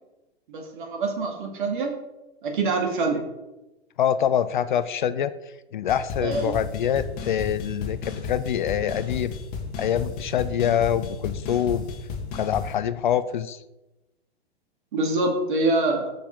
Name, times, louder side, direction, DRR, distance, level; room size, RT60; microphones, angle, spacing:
voice 1, 0.5-2.0 2.4-3.2 6.2-6.5 14.9-16.1, right 3 dB, 50° right, 2 dB, 2.2 m, -25 dB
voice 2, 4.0-5.3 5.7-9.3 9.8-11.9 12.3-13.6, left 9 dB, 50° left, 14 dB, 0.4 m, -25 dB
sound 1, 5.9-12.7, left 5 dB, 30° left, 1.5 m, -34 dB
6.9 x 6.2 x 5.2 m, 1.0 s
figure-of-eight pair, 110°, 32 cm